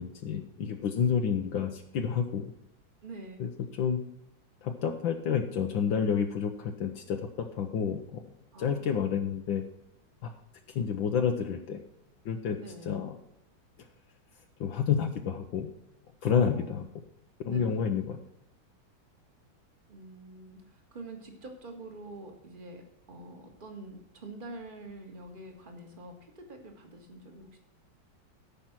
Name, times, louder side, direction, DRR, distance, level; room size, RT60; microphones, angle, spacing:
voice 1, 0.0-2.5 3.4-3.5 3.8-4.0 4.6-8.2 8.6-9.6 10.2-10.3 10.7-11.8 12.2-12.6 12.8-13.2 14.6-15.7 16.2-16.8 17.4-18.2, left 7 dB, 75° left, 4 dB, 1.6 m, -29 dB
voice 2, 3.0-3.4 8.5-9.0 12.6-13.0 16.2-16.9 17.4-18.0 19.9-22.8 23.1-27.6, right 2 dB, 25° right, 3 dB, 1.9 m, -46 dB
14.0 x 5.8 x 6.0 m, 0.77 s
omnidirectional pair, 2.1 m